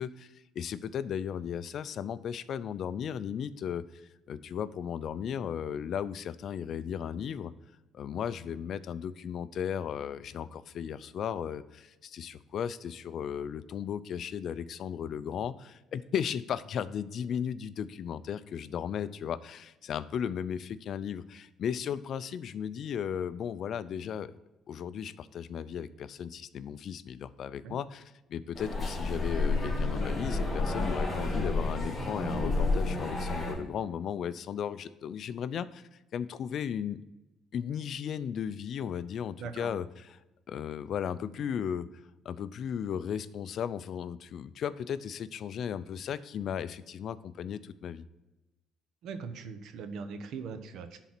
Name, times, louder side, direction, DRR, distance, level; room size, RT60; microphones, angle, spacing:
voice 1, 0.0-4.0 4.3-7.5 7.9-24.3 24.7-37.0 37.5-40.2 40.5-41.9 42.2-48.0, left 8 dB, 55° left, 15 dB, 0.4 m, -36 dB
sound 1, 28.5-33.5, left 2 dB, 20° left, 3.2 m, -30 dB
voice 2, 49.0-51.0, right 5 dB, 70° right, 9 dB, 0.9 m, -40 dB
10.5 x 4.1 x 6.0 m, 1.0 s
cardioid pair, 115°, 0 cm